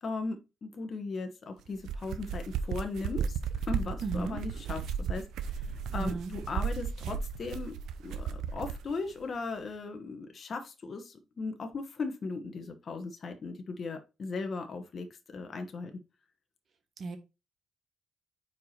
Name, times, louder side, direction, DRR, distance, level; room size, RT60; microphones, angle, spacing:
voice 1, 0.0-3.4 3.7-4.8 5.1-5.2 5.9-7.7 8.0-15.1 15.3-15.9, left 3 dB, 45° left, 1.1 m, -37 dB
sound 1, 1.7-8.9, right 7 dB, 80° right, 0.6 m, -35 dB
voice 2, 4.0-4.4 6.0-6.3 17.0-17.2, right 3 dB, 55° right, 1.6 m, -34 dB
4.7 x 4.6 x 4.3 m
cardioid pair, 90°, 0 cm